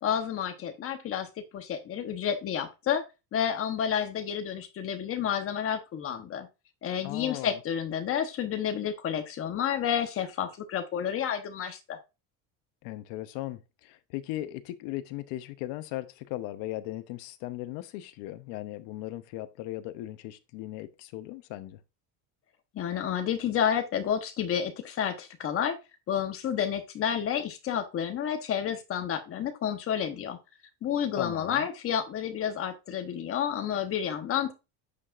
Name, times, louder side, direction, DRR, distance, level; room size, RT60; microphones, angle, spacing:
voice 1, 0.0-1.3 1.5-3.0 3.3-6.5 6.8-12.0 22.7-25.8 26.1-30.4 30.8-34.5, left 8 dB, 30° left, 1.1 m, -30 dB
voice 2, 7.0-7.6 12.8-21.8 31.2-31.7, left 15 dB, 80° left, 0.9 m, -38 dB
8.3 x 4.9 x 2.5 m
cardioid pair, 175°, 43 cm